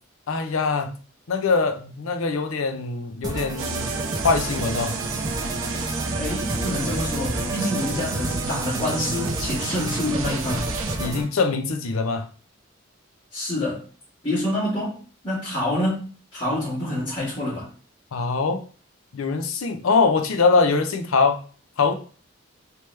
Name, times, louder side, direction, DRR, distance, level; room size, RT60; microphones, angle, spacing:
voice 1, 0.3-0.9 1.3-3.9 4.2-4.9 11.0-12.2 18.1-18.6 19.1-21.4 21.8-21.9, left 4 dB, 85° left, 0.6 m, -22 dB
sound 1, 3.2-11.2, right 1 dB, 20° right, 0.4 m, -30 dB
sound 2, 3.6-11.0, right 4 dB, 80° right, 0.5 m, -31 dB
voice 2, 6.2-10.7 13.3-13.8 14.2-15.0 15.2-17.7, left 1 dB, 25° left, 1.6 m, -27 dB
3.3 x 2.9 x 3.2 m
head